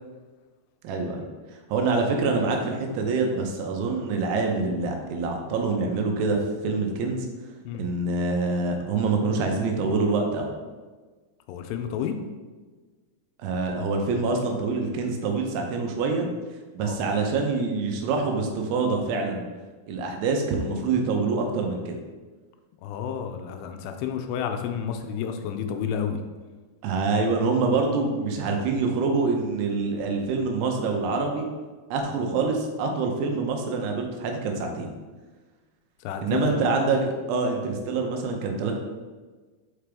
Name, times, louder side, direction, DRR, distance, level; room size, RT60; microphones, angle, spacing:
voice 1, 0.8-7.3 7.8-10.5 13.4-16.3 16.7-19.4 19.9-22.0 26.8-31.5 31.9-34.9 36.2-38.7, right 3 dB, 85° right, 2 dB, 2.8 m, -26 dB
voice 2, 11.5-12.1 16.8-17.2 22.8-26.2 36.0-36.6, left 8 dB, 85° left, 6 dB, 2.6 m, -30 dB
5.8 x 5.1 x 3.4 m, 1.4 s
omnidirectional pair, 4.8 m